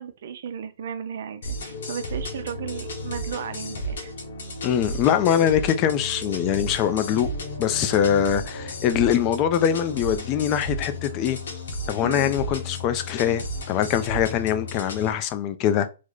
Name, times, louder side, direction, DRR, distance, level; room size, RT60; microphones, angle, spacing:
voice 1, 0.0-4.1 12.0-12.4, right 7 dB, 60° right, 0.5 m, -35 dB
sound 1, 1.4-15.1, left 1 dB, 80° left, 1.0 m, -33 dB
voice 2, 4.6-7.3 7.6-11.4 11.9-15.9, left 9 dB, 30° left, 0.4 m, -23 dB
3.2 x 2.1 x 3.7 m
hypercardioid pair, 160°, 0 cm